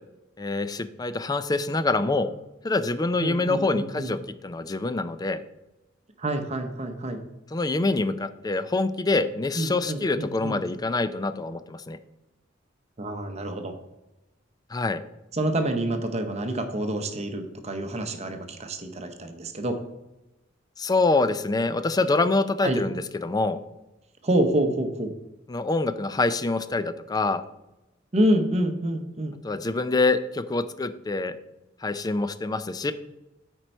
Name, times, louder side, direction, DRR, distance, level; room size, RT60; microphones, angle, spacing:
voice 1, 0.4-2.3 2.6-4.2 4.4-5.4 7.5-12.0 14.7-15.0 20.8-23.6 25.5-27.4 29.4-31.3 31.8-32.9, left 3 dB, 20° left, 12 dB, 0.4 m, -25 dB
voice 2, 3.2-4.1 6.2-7.2 9.5-10.6 13.0-13.7 15.3-19.8 22.6-22.8 24.2-25.1 28.1-29.3, right 1 dB, 35° right, 6 dB, 0.8 m, -27 dB
9.3 x 4.5 x 4.4 m, 0.96 s
head